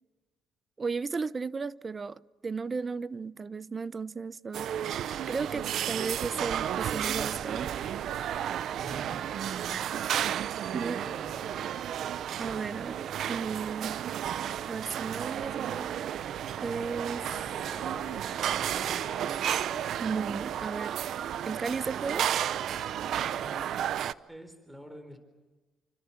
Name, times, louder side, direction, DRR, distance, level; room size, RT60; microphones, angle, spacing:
voice 1, 0.8-4.7 5.3-7.7 10.7-11.1 12.4-14.0 14.7-16.2 16.6-17.3 20.0-21.0 21.4-22.3, right 5 dB, 30° right, 0.8 m, -35 dB
sound 1, 4.5-24.1, right 10 dB, 70° right, 0.8 m, -32 dB
voice 2, 8.8-9.9 11.0-11.8 23.2-23.8 24.3-25.2, equal, 5° right, 4.3 m, -48 dB
sound 2, 16.1-21.8, left 4 dB, 30° left, 4.4 m, -51 dB
29.5 x 25.5 x 7.3 m
cardioid pair, 100°, 0 cm